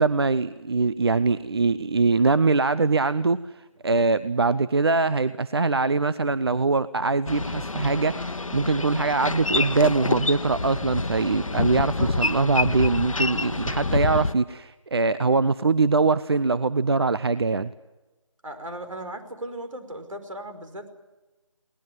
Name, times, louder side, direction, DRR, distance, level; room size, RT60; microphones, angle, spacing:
voice 1, 0.0-3.4 3.8-17.7, right 3 dB, 50° right, 15 dB, 0.7 m, -22 dB
Boat Water vehicle, 7.3-14.3, left 3 dB, 85° left, 1.1 m, -27 dB
voice 2, 11.8-12.1 18.4-20.9, right 1 dB, 80° right, 8 dB, 5.2 m, -37 dB
22.0 x 19.0 x 9.2 m, 1.1 s
figure-of-eight pair, 170°, 17 cm